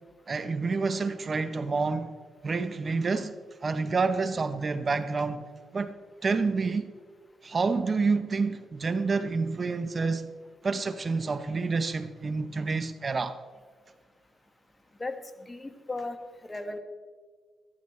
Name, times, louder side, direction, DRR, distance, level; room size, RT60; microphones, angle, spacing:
voice 1, 0.3-2.1 2.4-3.3 3.6-5.4 5.7-5.9 6.2-6.9 7.4-10.3 10.6-13.4, right 4 dB, 45° right, 0.8 m, -28 dB
voice 2, 15.0-16.2 16.4-16.8, left 2 dB, 25° left, 1.4 m, -36 dB
14.0 x 13.5 x 3.2 m
cardioid pair, 65°, 0 cm